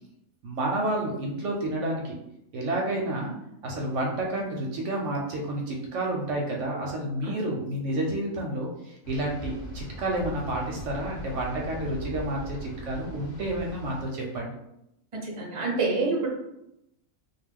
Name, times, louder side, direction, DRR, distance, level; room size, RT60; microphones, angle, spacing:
voice 1, 0.4-2.1 2.5-3.3 3.6-14.5, right 1 dB, 70° right, -1 dB, 0.8 m, -30 dB
sound 1, 9.0-14.0, equal, 65° left, 0.9 m, -40 dB
voice 2, 15.2-16.3, right 3 dB, 40° right, -2 dB, 0.4 m, -27 dB
2.3 x 2.3 x 3.4 m, 0.82 s
omnidirectional pair, 1.5 m